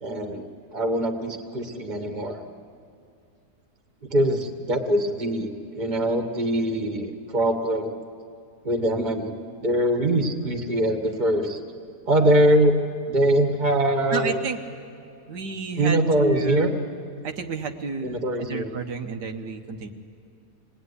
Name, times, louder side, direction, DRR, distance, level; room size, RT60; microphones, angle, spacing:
voice 1, 0.0-2.4 4.0-8.0 8.6-9.3 9.6-11.6 12.1-12.8 13.1-14.4 15.8-16.7 18.0-18.7, right 1 dB, 30° right, 5 dB, 1.8 m, -23 dB
voice 2, 14.1-14.6 15.3-16.7 17.2-19.9, right 4 dB, 90° right, 4 dB, 1.9 m, -31 dB
26.5 x 19.5 x 9.8 m, 2.4 s
omnidirectional pair, 1.8 m